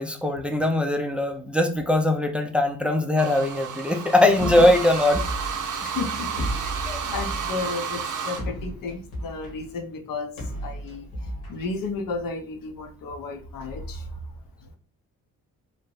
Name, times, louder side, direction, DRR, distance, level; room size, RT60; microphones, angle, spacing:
voice 1, 0.0-5.2 6.9-7.0, left 1 dB, 5° right, 5 dB, 0.3 m, -21 dB
sound 1, 3.2-8.4, right 7 dB, 50° right, 0.6 m, -31 dB
sound 2, 4.4-12.3, equal, 85° left, 1.3 m, -35 dB
voice 2, 5.8-6.3 6.6-6.7 7.0-10.3 10.6-11.1 11.5-14.2, left 4 dB, 60° left, 5 dB, 0.7 m, -33 dB
2.8 x 2.1 x 2.9 m, 0.42 s
supercardioid pair, 60°, 38 cm